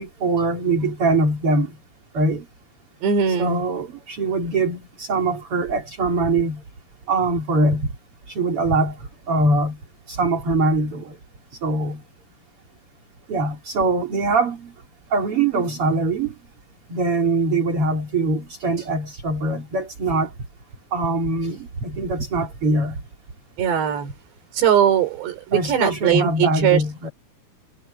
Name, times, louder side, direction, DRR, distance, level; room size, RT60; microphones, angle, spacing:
voice 1, 0.0-1.8 2.1-2.5 3.3-6.6 7.1-7.9 8.3-9.0 9.3-9.8 10.1-11.2 11.6-12.0 13.3-14.7 15.1-16.3 16.9-20.3 20.9-23.0 25.5-27.1, right 2 dB, 35° right, 3.5 m, -22 dB
voice 2, 3.0-3.6 23.6-24.1 24.5-26.8, right 8 dB, 85° right, 5.9 m, -20 dB
omnidirectional pair, 4.8 m